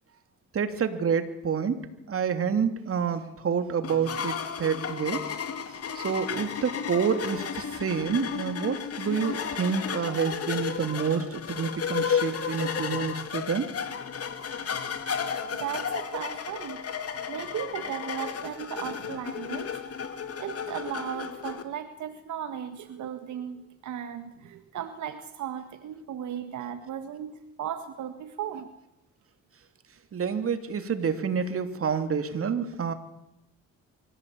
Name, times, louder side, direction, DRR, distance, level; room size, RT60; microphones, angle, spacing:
voice 1, 0.5-1.8 2.1-5.2 5.9-13.7 30.1-32.9, right 6 dB, 50° right, 8 dB, 2.8 m, -28 dB
sound 1, 3.8-21.6, left 7 dB, 50° left, 2.6 m, -33 dB
voice 2, 15.5-16.8 17.3-19.8 20.4-28.7, right 9 dB, 75° right, 8 dB, 1.8 m, -36 dB
24.5 x 16.0 x 8.6 m, 0.88 s
cardioid pair, 90°, 30 cm